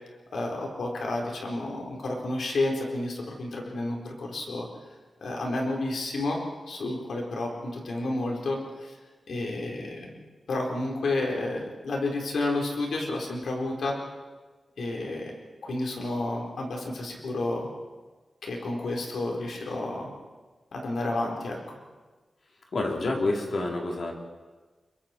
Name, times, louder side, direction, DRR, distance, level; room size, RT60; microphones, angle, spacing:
voice 1, 0.3-4.7 5.2-9.0 9.3-10.1 10.5-14.0 14.8-15.3 15.6-17.7 18.4-20.1 20.7-21.8, left 2 dB, 85° left, 0 dB, 4.1 m, -31 dB
voice 2, 22.7-24.1, left 2 dB, 60° left, 0 dB, 3.7 m, -28 dB
28.5 x 22.5 x 4.5 m, 1.3 s
wide cardioid pair, 115°, 0 cm